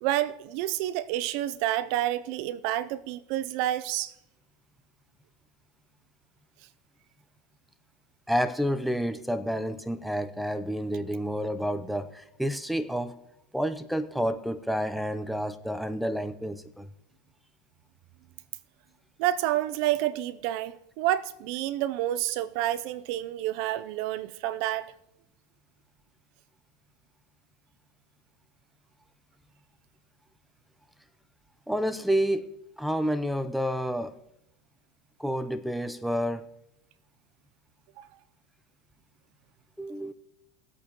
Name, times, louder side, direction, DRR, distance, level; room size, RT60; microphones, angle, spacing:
voice 1, 0.0-4.1 19.2-24.9 38.0-38.1, right 13 dB, 60° right, 0.6 m, -29 dB
voice 2, 8.3-13.2 13.5-16.9 31.7-32.5 32.8-34.2 35.2-36.5 39.8-40.1, equal, ahead, 0.7 m, -29 dB
19.5 x 8.4 x 3.1 m
hypercardioid pair, 100°, 0 cm